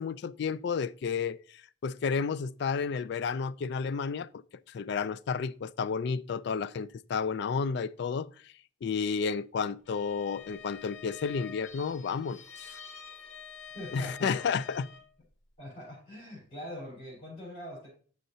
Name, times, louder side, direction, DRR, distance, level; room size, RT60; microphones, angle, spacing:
voice 1, 0.0-1.4 1.8-4.4 4.7-8.3 8.8-12.8 13.9-14.9, left 5 dB, 60° left, 0.3 m, -31 dB
Bowed string instrument, 9.8-15.1, left 6 dB, 75° left, 0.9 m, -47 dB
voice 2, 13.7-14.6 15.6-17.9, left 1 dB, 30° left, 4.1 m, -43 dB
9.0 x 6.4 x 2.7 m
head